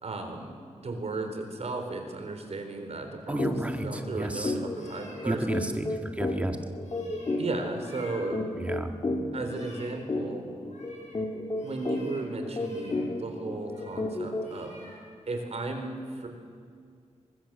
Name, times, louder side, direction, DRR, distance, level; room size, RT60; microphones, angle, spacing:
voice 1, 0.0-0.5 0.8-5.5 7.4-8.4 9.3-10.4 11.6-14.7 15.3-16.3, right 3 dB, 60° right, 5 dB, 3.8 m, -35 dB
voice 2, 3.3-4.5 5.3-5.9 6.2-6.6 8.6-8.9, right 1 dB, 10° right, 5 dB, 1.8 m, -31 dB
sound 1, 3.4-3.6 3.9-4.1 4.4-14.7, left 2 dB, 40° left, 2.6 m, -33 dB
sound 2, 4.7-5.2 6.8-7.4 7.7-8.2 8.6-8.9 9.3-9.9 10.5-11.2 11.5-12.2 12.5-13.0 13.6-14.0 14.4-15.0 15.4-15.6, left 1 dB, 75° left, 6.3 m, -52 dB
24.0 x 21.0 x 7.6 m, 2.1 s
wide cardioid pair, 115°, 12 cm